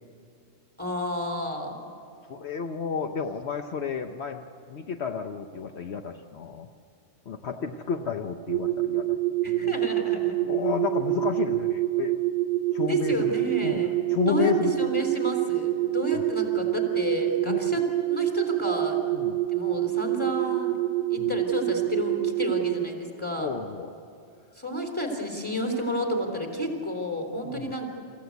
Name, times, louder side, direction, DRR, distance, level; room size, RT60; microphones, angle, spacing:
voice 1, 0.8-1.8 9.4-10.4 12.8-13.9 14.3-19.0 19.5-20.8 21.1-23.5 24.6-27.9, equal, 10° left, 2 dB, 3.2 m, -31 dB
voice 2, 2.3-6.7 7.3-9.2 9.5-9.8 10.5-12.1 12.7-13.3 13.6-14.7 16.1-16.2 17.5-17.7 19.1-19.4 21.2-21.4 23.4-23.9 27.3-27.8, left 7 dB, 70° left, 5 dB, 1.1 m, -31 dB
sound 1, 8.5-22.9, right 16 dB, 80° right, 1.0 m, -26 dB
27.5 x 15.0 x 8.3 m, 2.5 s
omnidirectional pair, 1.2 m